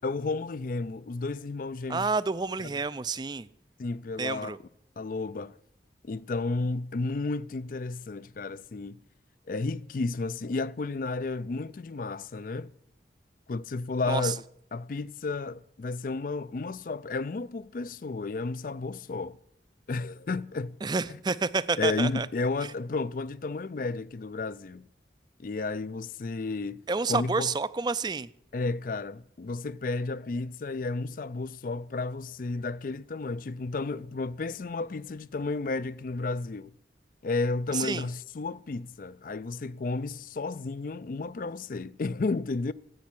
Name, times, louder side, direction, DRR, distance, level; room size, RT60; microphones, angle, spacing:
voice 1, 0.0-2.1 3.8-4.6 5.0-5.5 6.0-9.0 9.5-12.7 13.5-14.4 14.7-19.4 19.9-20.8 21.8-24.8 25.4-26.8 27.1-27.5 28.5-36.7 37.2-42.7, left 3 dB, 50° left, 0.4 m, -32 dB
voice 2, 1.9-3.5 4.2-4.6 14.1-14.3 20.8-22.3 26.9-28.3 37.7-38.1, right 4 dB, 25° right, 0.4 m, -29 dB
10.5 x 8.5 x 10.0 m
head